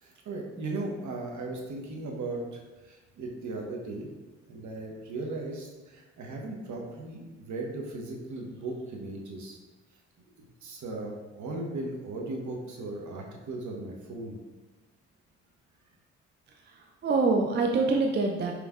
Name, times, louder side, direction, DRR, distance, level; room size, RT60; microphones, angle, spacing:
voice 1, 0.0-2.6 2.8-4.1 4.5-9.6 10.4-14.4, right 2 dB, 55° right, 0 dB, 1.0 m, -37 dB
voice 2, 16.6-18.5, right 3 dB, 30° right, 2 dB, 0.5 m, -25 dB
5.1 x 3.1 x 2.4 m, 1.2 s
hypercardioid pair, 40°, 35 cm